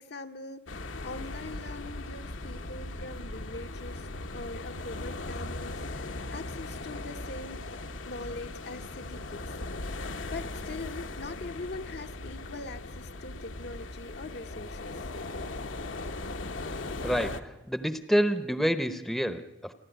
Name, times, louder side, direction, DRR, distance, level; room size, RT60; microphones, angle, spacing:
voice 1, 0.0-4.1 4.3-7.8 8.0-9.6 10.3-15.0, left 2 dB, 55° left, 6 dB, 0.9 m, -42 dB
sound 1, 0.7-17.4, left 2 dB, 75° left, 1.2 m, -38 dB
voice 2, 17.0-19.7, equal, ahead, 10 dB, 0.8 m, -28 dB
29.5 x 12.0 x 9.2 m, 1.0 s
head